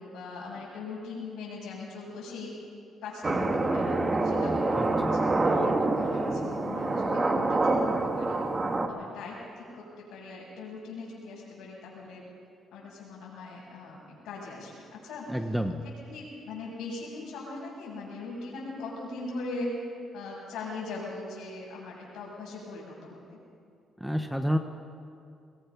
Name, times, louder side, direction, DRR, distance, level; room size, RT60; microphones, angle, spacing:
voice 1, 0.0-2.5 3.0-5.2 5.9-8.4 8.9-12.2 12.7-15.3 15.8-19.7 20.1-23.4, left 3 dB, 85° left, -9 dB, 6.6 m, -40 dB
sound 1, 3.2-8.9, right 2 dB, 30° right, 1.8 m, -26 dB
voice 2, 4.8-5.2 15.3-15.8 24.0-24.6, equal, ahead, 7 dB, 1.0 m, -29 dB
21.5 x 21.5 x 5.9 m, 2.4 s
cardioid pair, 90°, 0 cm